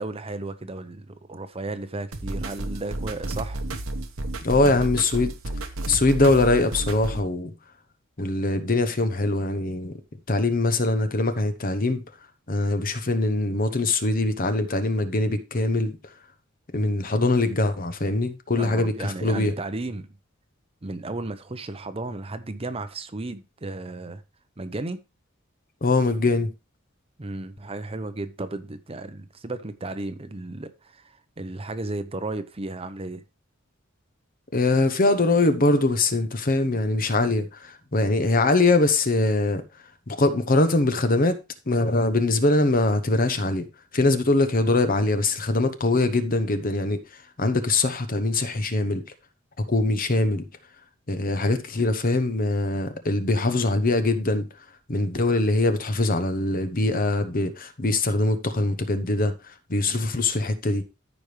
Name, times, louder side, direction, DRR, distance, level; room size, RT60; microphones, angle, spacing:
voice 1, 0.0-3.6 4.6-4.8 18.6-20.1 20.8-24.2 24.6-25.0 27.2-33.2 55.1-55.3 59.9-60.0, right 2 dB, 30° right, 0.7 m, -34 dB
sound 1, 2.1-7.2, right 1 dB, 75° right, 1.1 m, -32 dB
voice 2, 4.4-5.3 5.9-7.5 8.2-9.9 10.3-12.0 12.5-16.0 16.7-19.5 25.8-26.5 34.5-39.6 40.1-41.4 41.7-43.7 43.9-47.0 47.4-49.0 49.7-50.4 51.1-54.5 54.9-60.8, left 2 dB, 45° left, 1.0 m, -22 dB
13.5 x 5.2 x 3.3 m
head